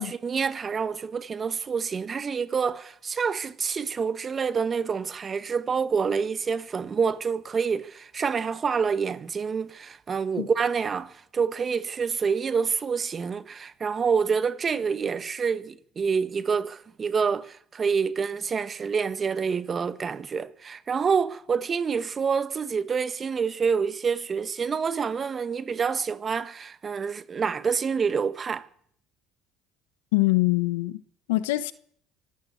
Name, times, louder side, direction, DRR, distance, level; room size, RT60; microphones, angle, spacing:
voice 1, 0.0-28.7, right 6 dB, 35° right, 1.5 m, -27 dB
voice 2, 30.1-31.0 31.3-31.7, left 20 dB, 90° left, 1.1 m, -23 dB
24.5 x 13.5 x 8.6 m
supercardioid pair, 85°, 0 cm